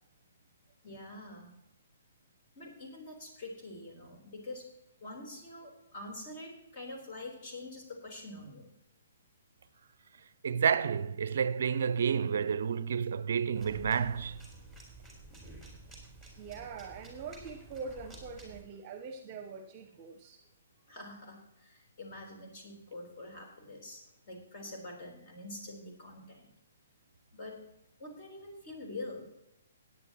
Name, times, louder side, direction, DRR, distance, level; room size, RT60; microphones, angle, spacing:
voice 1, 0.8-1.5 2.6-4.7 5.0-8.7 20.9-26.5 27.3-27.6 28.0-29.3, left 2 dB, 35° left, 3.7 m, -45 dB
voice 2, 10.4-14.4, right 7 dB, 55° right, 0.5 m, -30 dB
sound 1, 13.6-18.6, right 1 dB, 5° left, 3.8 m, -50 dB
voice 3, 16.4-20.4, right 5 dB, 30° right, 0.9 m, -43 dB
17.0 x 9.6 x 3.0 m
figure-of-eight pair, 125°, 0 cm